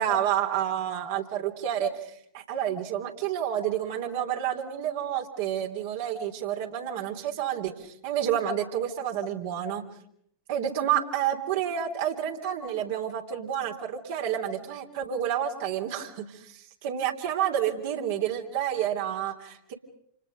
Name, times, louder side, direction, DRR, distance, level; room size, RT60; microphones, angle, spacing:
voice 1, 0.0-2.1 2.5-9.8 10.5-19.7, right 10 dB, 50° right, 2 dB, 3.3 m, -29 dB
30.0 x 28.5 x 5.3 m, 0.69 s
figure-of-eight pair, 90°, 0 cm